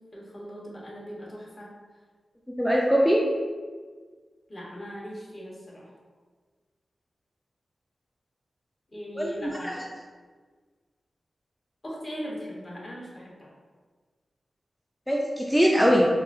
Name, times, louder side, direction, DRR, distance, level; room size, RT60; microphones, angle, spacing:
voice 1, 0.1-1.8 4.5-5.9 8.9-9.9 11.8-13.5, equal, 45° left, -4 dB, 1.0 m, -39 dB
voice 2, 2.6-3.2 9.2-9.7 15.1-16.1, equal, 5° left, -3 dB, 0.4 m, -22 dB
3.7 x 2.3 x 2.6 m, 1.5 s
cardioid pair, 65°, 0 cm